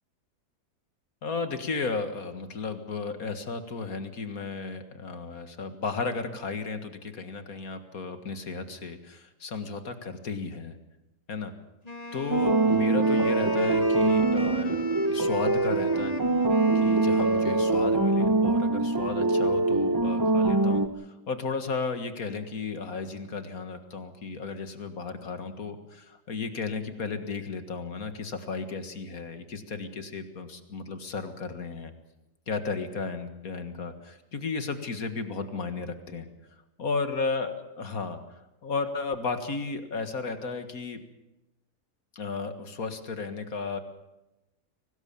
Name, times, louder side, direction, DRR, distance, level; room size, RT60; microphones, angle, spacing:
voice 1, 1.2-10.8 11.3-11.5 12.1-14.8 15.1-16.2 16.8-31.9 32.5-36.3 36.8-38.2 38.6-41.0 42.1-43.8, left 4 dB, 60° left, 8 dB, 2.1 m, -34 dB
Wind instrument woodwind instrument, 11.8-18.0, left 3 dB, 25° left, 1.3 m, -38 dB
sound 1, 12.3-20.9, right 3 dB, 20° right, 0.7 m, -24 dB
24.0 x 19.0 x 7.2 m, 0.95 s
omnidirectional pair, 1.7 m